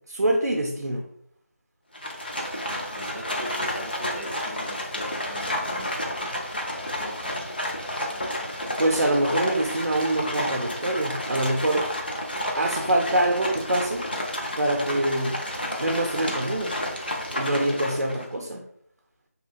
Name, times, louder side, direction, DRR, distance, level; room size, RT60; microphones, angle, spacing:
voice 1, 0.1-1.0 8.8-11.9 12.6-14.1 14.6-15.4 15.8-16.8 17.3-18.6, right 1 dB, 80° right, 0 dB, 0.5 m, -25 dB
Livestock farm animals working animals, 1.9-18.3, left 1 dB, 35° left, 0.4 m, -31 dB
voice 2, 2.9-5.9 6.9-7.4, equal, 65° left, -6 dB, 1.0 m, -40 dB
2.8 x 2.1 x 2.6 m, 0.68 s
figure-of-eight pair, 180°, 9 cm